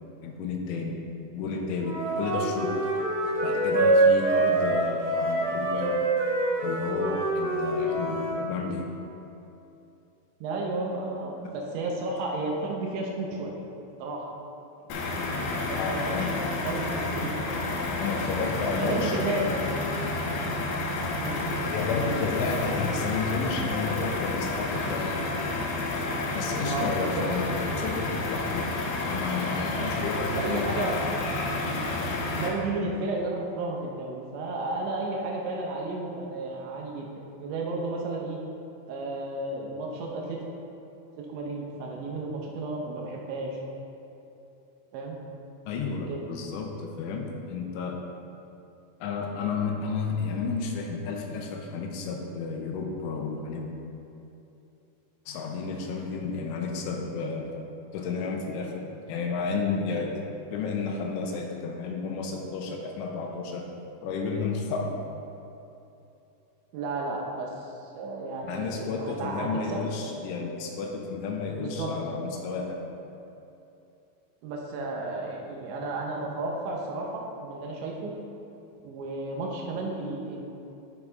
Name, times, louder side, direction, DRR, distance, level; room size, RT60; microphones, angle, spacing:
voice 1, 0.2-1.0 1.3-2.7 3.4-6.0 6.6-8.8 15.8-16.3 18.0-19.2 21.7-25.3 26.3-28.7 29.1-30.9 45.7-48.0 49.0-53.7 55.3-57.6 57.9-63.6 64.0-64.9 68.4-72.8, left 4 dB, 90° left, 1 dB, 3.2 m, -32 dB
Wind instrument woodwind instrument, 1.8-8.4, right 2 dB, 55° right, 2.6 m, -25 dB
voice 2, 10.4-13.5 14.0-14.3 14.8-15.1 15.4-17.6 18.8-19.5 21.1-21.4 26.6-27.6 30.4-31.0 31.7-37.1 37.4-38.4 38.9-40.4 41.2-43.6 44.9-45.2 46.1-46.2 66.7-69.8 71.6-71.9 74.4-78.1 78.8-80.4, right 2 dB, 75° right, -1 dB, 3.0 m, -33 dB
sound 1, 14.9-32.5, left 2 dB, 75° left, 2.8 m, -30 dB
11.0 x 6.1 x 3.9 m, 2.8 s
omnidirectional pair, 5.6 m